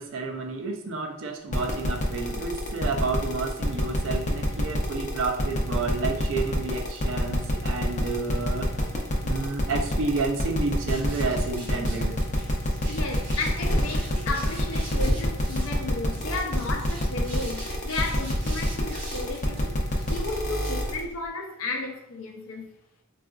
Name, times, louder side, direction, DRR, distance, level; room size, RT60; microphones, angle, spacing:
voice 1, 0.0-8.7 9.2-12.2, right 3 dB, 65° right, 0.4 m, -30 dB
sound 1, 1.5-21.0, left 1 dB, 35° left, 0.5 m, -28 dB
sound 2, 10.9-21.3, right 1 dB, 45° right, 1.0 m, -40 dB
voice 2, 12.9-19.8 20.1-22.8, left 3 dB, 85° left, 0.5 m, -33 dB
3.7 x 2.4 x 2.4 m
head